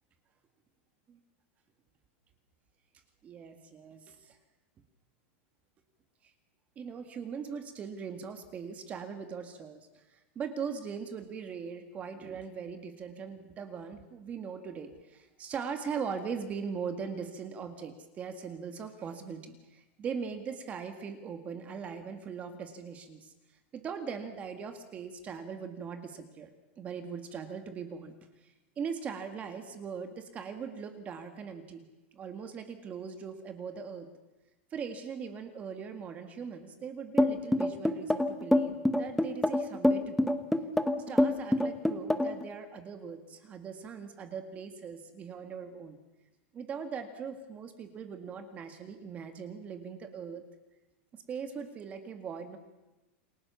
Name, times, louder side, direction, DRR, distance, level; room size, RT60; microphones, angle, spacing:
voice 1, 3.2-4.4 6.2-6.3 6.8-23.3 23.7-26.5 26.8-28.1 28.4-31.9 32.1-34.1 34.7-40.3 41.0-46.0 46.5-50.4 51.1-52.6, right 6 dB, 20° right, 7 dB, 1.9 m, -40 dB
sound 1, 37.2-42.4, left 1 dB, ahead, 1.1 m, -25 dB
28.5 x 20.0 x 7.0 m, 1.0 s
supercardioid pair, 160°, 7 cm